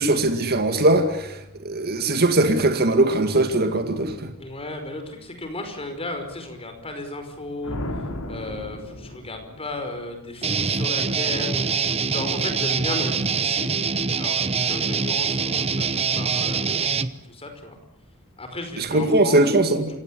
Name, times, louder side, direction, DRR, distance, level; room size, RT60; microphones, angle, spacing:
voice 1, 0.0-1.4 1.6-4.3 18.8-19.9, right 2 dB, 45° right, 6 dB, 2.1 m, -20 dB
voice 2, 4.4-7.8 8.3-13.9 14.1-17.8 18.4-19.8, left 2 dB, 25° left, 6 dB, 5.2 m, -35 dB
sound 1, 7.6-9.9, left 1 dB, 85° left, 4.7 m, -34 dB
Guitar, 10.4-17.1, right 5 dB, 30° right, 0.9 m, -24 dB
27.5 x 18.0 x 10.0 m, 0.82 s
head